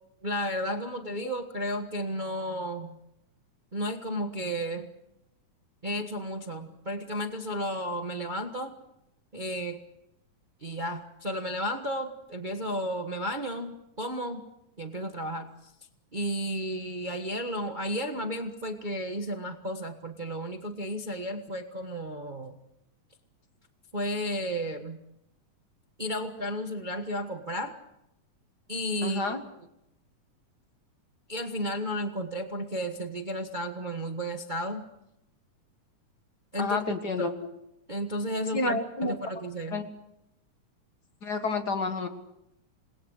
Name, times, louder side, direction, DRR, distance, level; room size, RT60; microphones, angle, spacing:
voice 1, 0.2-3.0 3.7-4.9 5.8-8.8 9.3-9.8 10.6-14.4 14.8-15.7 16.1-22.6 23.9-25.0 26.0-27.8 28.7-29.3 31.3-34.8 36.5-36.8 37.2-37.3 37.9-39.8, equal, 75° right, 5 dB, 0.4 m, -33 dB
voice 2, 29.0-29.4 36.6-37.3 38.5-39.1 39.7-39.9 41.2-42.1, left 3 dB, 40° left, 6 dB, 1.8 m, -29 dB
28.5 x 20.5 x 6.6 m, 0.83 s
omnidirectional pair, 3.6 m